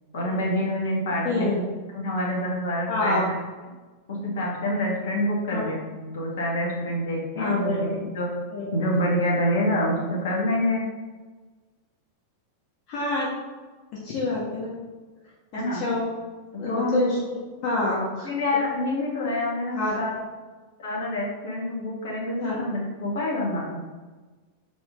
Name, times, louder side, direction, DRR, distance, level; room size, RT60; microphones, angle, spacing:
voice 1, 0.1-1.6 1.9-3.3 4.1-8.3 8.7-10.8 15.5-15.8 16.7-17.0 18.2-20.1 20.8-23.8, left 1 dB, 60° left, -3 dB, 2.1 m, -27 dB
voice 2, 1.2-1.6 2.9-3.2 5.5-5.6 7.4-8.0 8.5-8.7 12.9-13.3 14.0-14.7 15.5-16.1 16.6-17.2 17.6-18.3 19.7-20.0 22.4-22.5, left 2 dB, 40° left, -6 dB, 1.7 m, -26 dB
7.1 x 5.0 x 3.8 m, 1.3 s
figure-of-eight pair, 90°, 0 cm